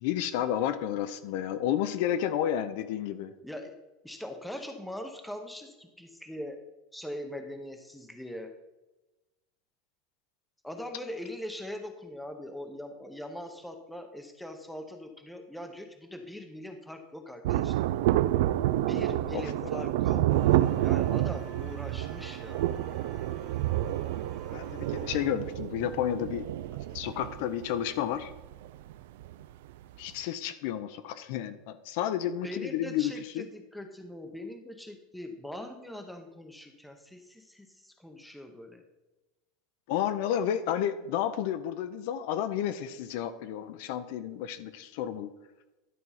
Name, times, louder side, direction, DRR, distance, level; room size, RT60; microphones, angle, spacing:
voice 1, 0.0-3.3 19.3-19.4 19.7-19.9 24.5-26.5 26.9-28.3 30.0-33.4 39.9-45.3, left 10 dB, 55° left, 11 dB, 0.6 m, -31 dB
voice 2, 3.4-3.8 4.0-6.6 6.9-8.5 10.6-17.9 18.9-22.7 32.4-38.8, left 1 dB, ahead, 5 dB, 0.7 m, -42 dB
Thunder, 17.4-29.4 29.7-29.8, right 14 dB, 70° right, 0.3 m, -29 dB
sound 1, 20.3-25.3, right 5 dB, 45° right, 1.4 m, -50 dB
11.0 x 4.6 x 5.5 m, 1.0 s
supercardioid pair, 175°, 0 cm